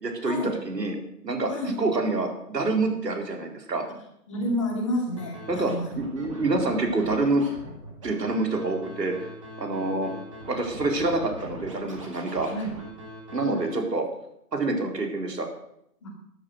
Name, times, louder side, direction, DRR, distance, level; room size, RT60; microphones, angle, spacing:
voice 1, 0.0-1.0 1.2-1.5 1.8-3.8 5.5-7.4 8.0-9.3 9.6-10.1 10.5-12.5 13.3-14.1 14.5-15.5, right 2 dB, 80° right, 3 dB, 4.3 m, -27 dB
voice 2, 4.3-5.9 12.5-12.8 13.7-13.8 16.0-16.1, equal, 20° left, -1 dB, 2.4 m, -29 dB
Scratching (performance technique), 5.2-13.7, equal, 20° right, 2.1 m, -41 dB
13.5 x 11.0 x 6.5 m, 0.75 s
hypercardioid pair, 175°, 49 cm